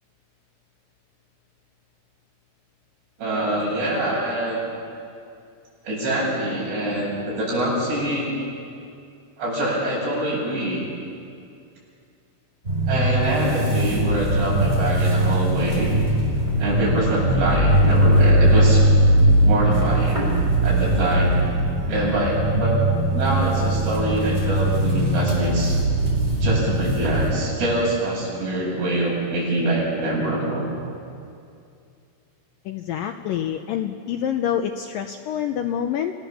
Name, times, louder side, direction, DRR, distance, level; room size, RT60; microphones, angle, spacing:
voice 1, 3.2-4.6 5.8-8.3 9.4-10.9 12.9-15.9 16.6-18.9 19.4-20.2 20.6-21.4 21.9-22.8 23.1-25.8 26.4-30.6, right 1 dB, 75° right, -5 dB, 9.7 m, -24 dB
sound 1, 12.6-27.3, right 1 dB, 15° right, 4.9 m, -20 dB
voice 2, 32.7-36.1, left 9 dB, 80° left, 5 dB, 2.0 m, -26 dB
29.0 x 18.0 x 7.1 m, 2.4 s
omnidirectional pair, 4.8 m